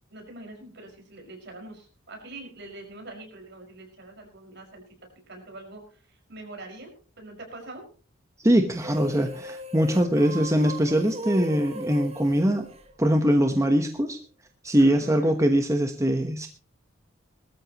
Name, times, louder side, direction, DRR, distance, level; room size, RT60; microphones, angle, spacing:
voice 1, 0.1-4.8 5.3-7.8 14.8-15.3, right 2 dB, 60° right, 2 dB, 5.6 m, -44 dB
voice 2, 8.4-12.7 13.0-14.2 14.6-16.5, equal, 15° right, 5 dB, 1.1 m, -22 dB
sound 1, 8.7-13.5, equal, 30° right, 1.5 m, -38 dB
20.0 x 13.5 x 3.0 m, 0.39 s
head